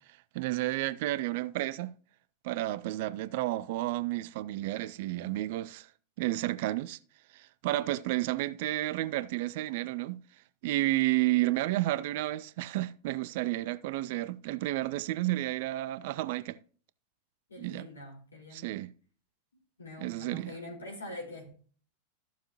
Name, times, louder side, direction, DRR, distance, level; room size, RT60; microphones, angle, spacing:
voice 1, 0.3-1.9 2.4-5.9 6.2-7.0 7.3-10.2 10.6-16.6 17.6-17.8 18.5-18.9 20.0-20.5, right 17 dB, 50° right, 0.4 m, -31 dB
voice 2, 17.5-18.7 19.8-21.5, left 1 dB, 75° left, 4.4 m, -44 dB
14.0 x 7.1 x 3.0 m
figure-of-eight pair, 90°, 0 cm